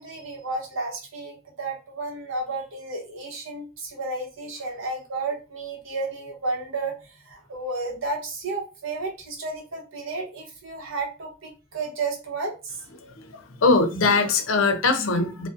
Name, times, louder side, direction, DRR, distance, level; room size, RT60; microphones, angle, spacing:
voice 1, 0.0-6.9 7.3-12.7, right 3 dB, 70° right, 0.8 m, -32 dB
voice 2, 12.9-15.5, left 3 dB, 80° left, 0.5 m, -22 dB
2.4 x 2.1 x 2.5 m
head